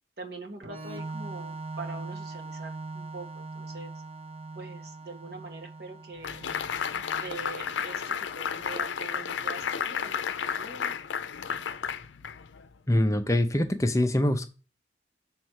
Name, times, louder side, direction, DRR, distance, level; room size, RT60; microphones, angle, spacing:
voice 1, 0.2-3.9 4.5-6.4 7.1-10.9, right 3 dB, 60° right, 3 dB, 1.5 m, -43 dB
Organ, 0.6-8.2, right 3 dB, 35° right, 0.7 m, -41 dB
sound 1, 6.2-12.7, left 7 dB, 80° left, 0.5 m, -32 dB
voice 2, 12.9-14.5, left 1 dB, 15° left, 7 dB, 0.6 m, -24 dB
6.3 x 4.5 x 6.2 m, 0.34 s
head